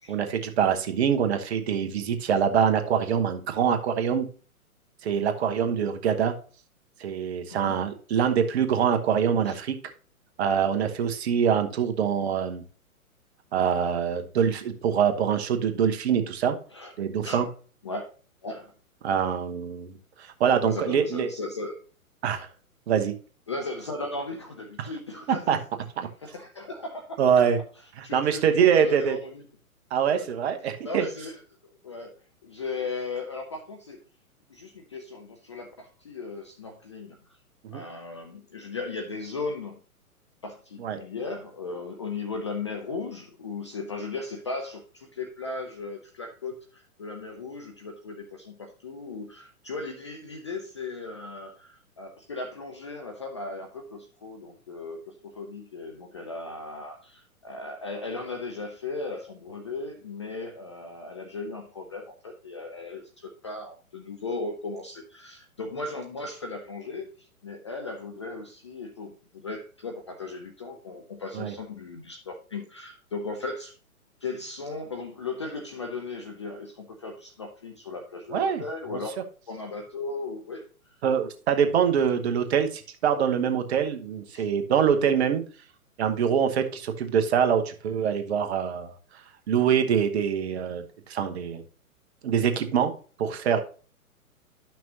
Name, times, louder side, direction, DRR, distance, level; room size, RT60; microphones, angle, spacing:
voice 1, 0.1-4.3 5.0-6.3 7.0-9.8 10.4-12.6 13.5-16.6 17.0-17.5 19.0-21.3 22.2-22.5 22.9-23.1 25.5-25.6 26.0-26.1 27.2-27.6 28.0-29.2 29.9-31.1 37.6-37.8 40.8-41.0 71.3-71.5 78.3-78.6 78.9-79.0 81.0-85.4 86.0-88.9 89.5-90.8 91.1-91.6 92.2-92.9 93.2-93.6, right 8 dB, 45° right, 7 dB, 1.1 m, -24 dB
voice 2, 7.5-7.8 9.4-9.6 16.7-16.9 17.2-17.4 17.8-18.1 18.4-18.7 20.6-21.8 23.5-25.5 26.2-27.5 28.0-29.5 30.1-30.2 30.8-31.4 31.8-32.1 32.4-34.0 34.5-37.2 37.7-39.8 40.4-69.2 69.4-73.7 74.2-79.1 79.5-80.9 84.3-84.5, left 3 dB, 20° left, 3 dB, 0.4 m, -37 dB
11.0 x 6.0 x 2.8 m, 0.39 s
hypercardioid pair, 130°, 44 cm